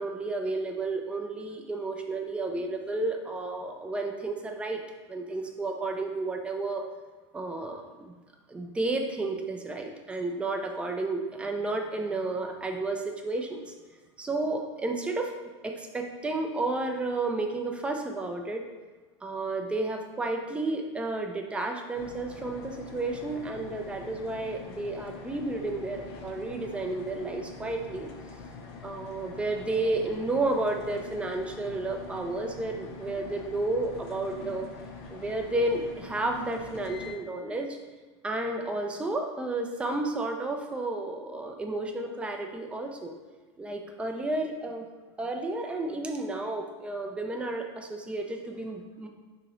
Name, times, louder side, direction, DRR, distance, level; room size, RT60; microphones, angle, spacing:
voice 1, 0.0-4.8 5.1-6.8 7.3-8.1 8.5-13.6 14.2-15.3 15.6-18.6 19.2-28.1 28.8-34.7 35.1-37.8 38.2-43.1 43.6-44.9 45.2-49.1, right 2 dB, 10° right, 3 dB, 0.3 m, -32 dB
sound 1, 21.9-37.1, left 4 dB, 45° left, 0.5 m, -44 dB
2.9 x 2.9 x 3.8 m, 1.3 s
supercardioid pair, 120°, 15 cm